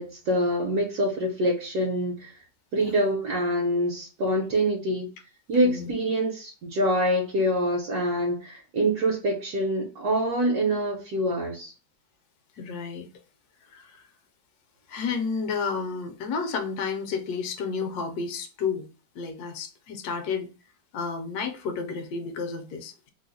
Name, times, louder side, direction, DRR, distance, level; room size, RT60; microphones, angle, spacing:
voice 1, 0.0-2.3 2.7-5.1 5.5-11.7, equal, 65° right, -2 dB, 1.1 m, -25 dB
voice 2, 5.6-5.9 12.6-13.1 13.7-14.0 14.9-18.9 19.1-20.5 20.9-23.1, left 5 dB, 70° left, 6 dB, 1.0 m, -31 dB
3.0 x 2.0 x 3.7 m, 0.35 s
omnidirectional pair, 2.0 m